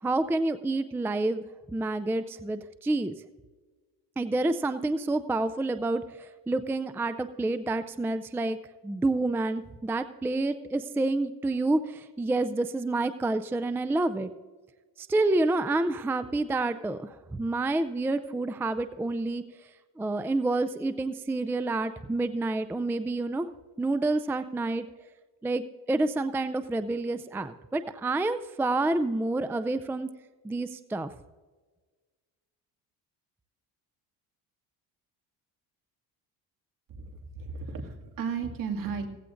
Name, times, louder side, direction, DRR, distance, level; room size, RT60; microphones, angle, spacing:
voice 1, 0.0-3.1 4.2-8.6 8.8-14.3 15.0-19.7 20.0-23.5 23.8-24.8 25.4-30.1 30.4-31.1, right 2 dB, 5° right, 11 dB, 0.4 m, -28 dB
voice 2, 36.9-39.1, right 5 dB, 60° right, 3 dB, 2.3 m, -34 dB
17.0 x 15.5 x 2.6 m, 1.4 s
cardioid pair, 115°, 38 cm